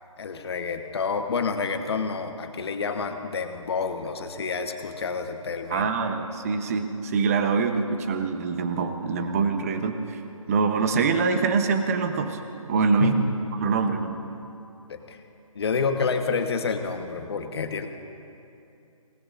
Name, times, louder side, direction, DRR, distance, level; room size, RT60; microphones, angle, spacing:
voice 1, 0.2-5.9 13.0-13.2 14.9-15.2 15.5-17.9, left 5 dB, 45° left, 6 dB, 1.2 m, -28 dB
voice 2, 5.7-10.2 10.5-12.4 12.7-14.1, right 5 dB, 25° right, 7 dB, 0.9 m, -24 dB
25.5 x 19.0 x 2.6 m, 2.7 s
figure-of-eight pair, 155°, 18 cm